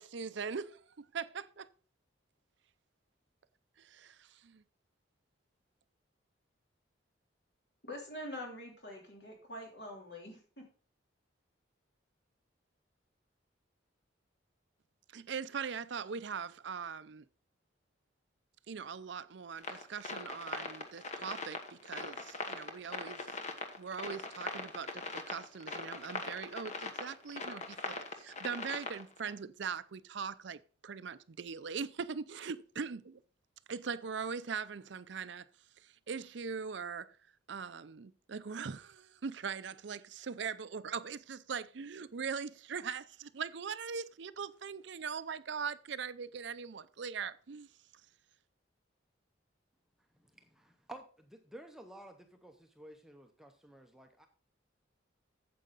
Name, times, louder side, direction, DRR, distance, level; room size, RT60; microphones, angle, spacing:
voice 1, 0.0-1.7 3.8-4.6 15.1-17.2 18.7-23.4 23.8-33.2 33.7-35.4 35.8-37.1 37.5-47.7, right 6 dB, 65° right, 0.5 m, -41 dB
voice 2, 7.8-10.6, left 1 dB, 60° left, 3.3 m, -45 dB
sound 1, 19.6-29.3, left 3 dB, 35° left, 1.2 m, -41 dB
voice 3, 50.3-54.3, right 1 dB, ahead, 0.7 m, -52 dB
9.1 x 7.7 x 4.0 m
head